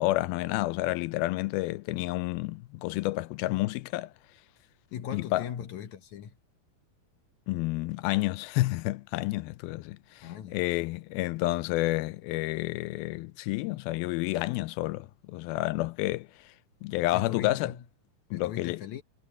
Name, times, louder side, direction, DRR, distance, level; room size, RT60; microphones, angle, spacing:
voice 1, 0.0-4.1 5.1-5.4 7.5-16.3 16.8-17.7 18.3-18.8, left 18 dB, 90° left, 2.5 m, -30 dB
voice 2, 4.9-6.4 10.2-10.6 17.1-17.8 18.3-19.0, left 9 dB, 65° left, 2.1 m, -39 dB
omnidirectional pair, 4.2 m